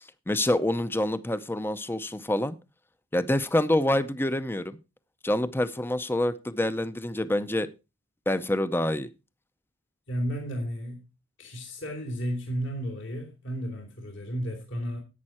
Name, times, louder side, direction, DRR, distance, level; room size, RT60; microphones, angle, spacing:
voice 1, 0.0-2.6 3.1-4.8 5.2-7.7 8.3-9.1, left 1 dB, 10° left, 0.6 m, -27 dB
voice 2, 10.1-11.0 11.4-15.0, equal, 65° left, 2.7 m, -33 dB
11.0 x 8.8 x 4.3 m
head